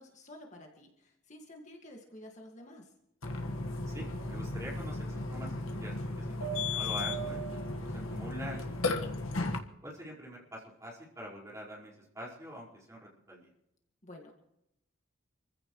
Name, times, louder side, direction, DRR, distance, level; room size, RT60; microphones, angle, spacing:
voice 1, 0.0-2.9 14.0-14.3, left 1 dB, 35° left, 0 dB, 2.0 m, -51 dB
Burping eructation, 3.2-9.6, left 2 dB, 80° left, 1.6 m, -35 dB
voice 2, 3.9-8.9 9.8-13.5, equal, 15° right, -4 dB, 5.0 m, -45 dB
27.0 x 15.5 x 3.2 m, 0.81 s
head